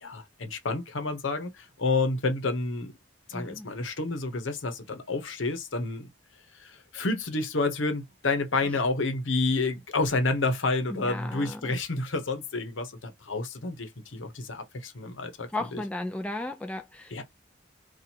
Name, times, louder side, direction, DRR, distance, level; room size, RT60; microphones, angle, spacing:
voice 1, 0.0-2.9 3.3-6.1 6.6-15.8 17.1-17.2, left 3 dB, 90° left, 0.9 m, -29 dB
voice 2, 3.3-3.7 10.9-11.7 15.5-17.2, left 2 dB, 5° left, 0.4 m, -35 dB
2.8 x 2.5 x 4.2 m
head